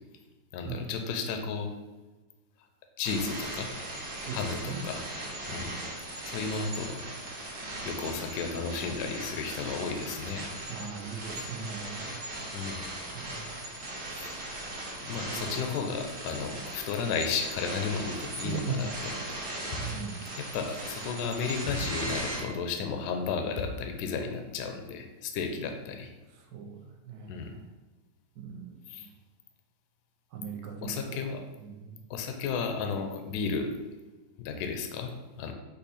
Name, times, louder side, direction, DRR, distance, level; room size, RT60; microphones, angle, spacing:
voice 1, 0.5-1.7 3.0-3.7 4.3-5.0 5.5-5.7 6.2-7.0 7.9-10.5 12.5-12.8 14.2-14.3 15.0-19.2 20.4-26.1 27.3-27.5 28.9-29.1 30.8-31.4 32.1-33.7 34.4-35.5, left 5 dB, 70° left, 5 dB, 1.0 m, -33 dB
sound 1, 3.0-22.4, right 1 dB, 40° right, 1.1 m, -38 dB
voice 2, 4.2-4.8 5.5-5.8 10.7-12.2 13.1-13.5 15.1-15.5 18.4-19.0 19.8-20.3 26.5-27.6 28.4-29.1 30.3-31.3 31.6-32.0, right 5 dB, 70° right, 2 dB, 0.9 m, -39 dB
sound 2, 19.7-20.2 21.7-22.1 23.6-24.0, left 4 dB, 90° left, 1.4 m, -38 dB
5.5 x 2.2 x 4.1 m, 1.2 s
omnidirectional pair, 2.1 m